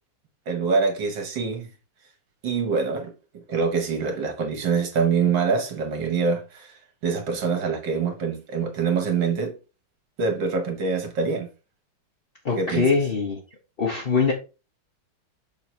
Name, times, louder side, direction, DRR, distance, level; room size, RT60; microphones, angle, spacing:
voice 1, 0.5-1.7 2.4-9.6 10.2-11.5 12.6-12.9, right 5 dB, 60° right, 2.0 m, -25 dB
voice 2, 12.4-13.4 13.8-14.3, left 5 dB, 40° left, 0.9 m, -22 dB
6.6 x 3.9 x 4.3 m
omnidirectional pair, 2.4 m